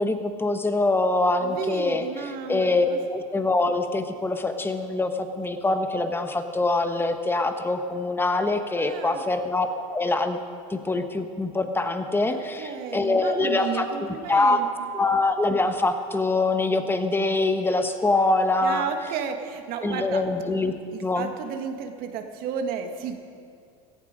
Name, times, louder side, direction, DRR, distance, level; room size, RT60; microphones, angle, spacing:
voice 1, 0.0-10.4 10.7-13.9 14.3-14.6 14.9-18.9 19.8-20.7 21.0-21.3, left 2 dB, 10° left, 7 dB, 1.4 m, -24 dB
voice 2, 1.4-3.0 8.8-9.2 12.3-14.9 18.6-20.2 20.9-23.2, right 7 dB, 55° right, 5 dB, 1.7 m, -33 dB
17.0 x 15.0 x 5.2 m, 2.4 s
hypercardioid pair, 95°, 18 cm